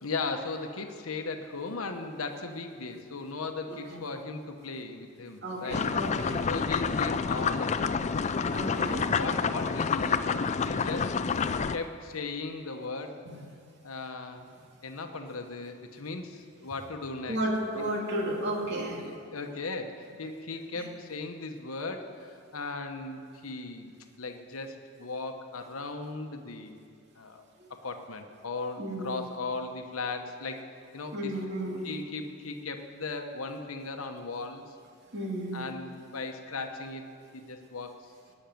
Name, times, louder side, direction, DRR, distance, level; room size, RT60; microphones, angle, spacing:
voice 1, 0.0-5.8 6.5-8.0 8.9-13.2 13.8-14.5 14.8-17.4 17.8-17.9 19.0-26.8 27.2-27.4 27.7-30.7 30.9-31.4 31.8-34.7 35.5-37.1 37.3-38.1, left 3 dB, 80° left, 5 dB, 1.0 m, -37 dB
voice 2, 5.4-6.4 8.5-9.1 11.0-11.1 17.3-19.0 20.8-20.9 27.6-27.7 28.8-29.1 31.1-31.9 35.1-35.6, right 1 dB, 55° right, -1 dB, 2.4 m, -33 dB
sound 1, 5.7-11.8, left 5 dB, 35° left, 0.4 m, -28 dB
17.5 x 6.4 x 9.3 m, 2.3 s
head